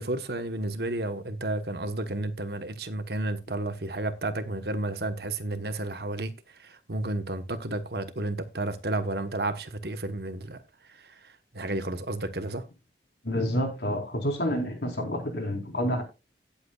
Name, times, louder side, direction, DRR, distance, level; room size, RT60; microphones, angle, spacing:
voice 1, 0.0-6.3 6.6-10.6 11.5-12.6, right 2 dB, 60° right, 1.2 m, -31 dB
voice 2, 13.2-16.0, equal, 70° left, 4.4 m, -28 dB
17.0 x 8.3 x 2.4 m
head